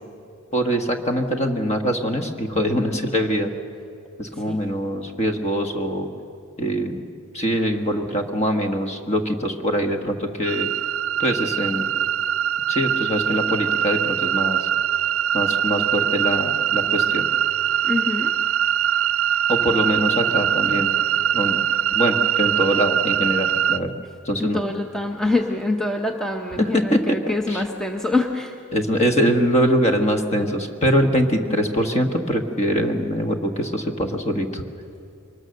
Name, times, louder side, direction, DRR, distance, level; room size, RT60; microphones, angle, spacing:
voice 1, 0.5-3.5 4.2-6.1 6.6-7.0 7.3-10.7 11.2-11.8 12.7-14.6 15.3-17.3 19.5-20.9 21.3-21.6 21.9-23.9 24.2-24.6 26.5-27.2 27.5-27.6 28.7-34.6, equal, 30° left, 4 dB, 1.5 m, -23 dB
sound 1, 10.4-23.8, right 10 dB, 70° right, 0.5 m, -22 dB
voice 2, 17.8-18.3 24.4-28.6, left 2 dB, 5° left, 3 dB, 0.7 m, -25 dB
23.5 x 20.0 x 6.6 m, 2.6 s
head